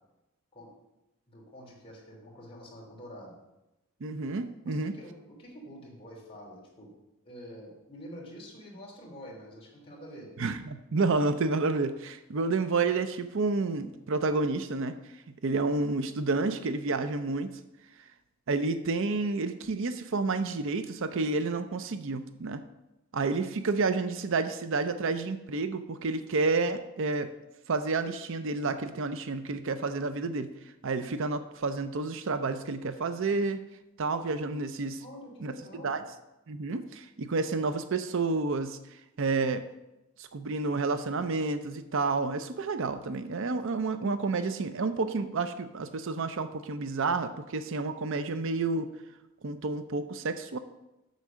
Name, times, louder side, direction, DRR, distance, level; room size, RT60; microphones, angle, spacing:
voice 1, 1.3-3.3 4.6-6.9 7.2-10.3 35.0-36.0, equal, 25° left, -3 dB, 3.0 m, -47 dB
voice 2, 4.0-4.9 10.4-15.0 15.4-17.5 18.5-22.6 23.1-27.3 27.7-30.5 30.8-33.6 34.0-35.0 35.4-35.5 35.8-36.0 36.5-39.6 40.2-48.9 49.4-50.6, right 3 dB, 60° right, 10 dB, 0.6 m, -30 dB
8.2 x 6.6 x 6.2 m, 0.96 s
head